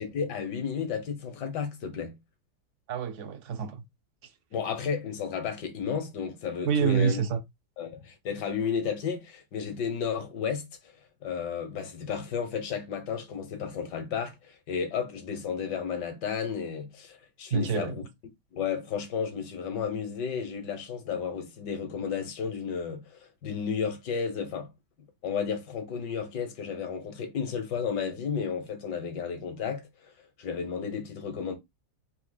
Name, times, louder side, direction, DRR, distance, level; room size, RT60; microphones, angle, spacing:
voice 1, 0.0-2.2 4.5-7.2 7.8-10.7 11.2-18.1 18.5-24.7 25.2-30.1 30.4-31.6, left 6 dB, 80° left, 1.7 m, -33 dB
voice 2, 2.9-3.8 6.7-7.4 17.5-18.0, right 7 dB, 60° right, 0.8 m, -27 dB
4.3 x 2.8 x 3.9 m
omnidirectional pair, 1.8 m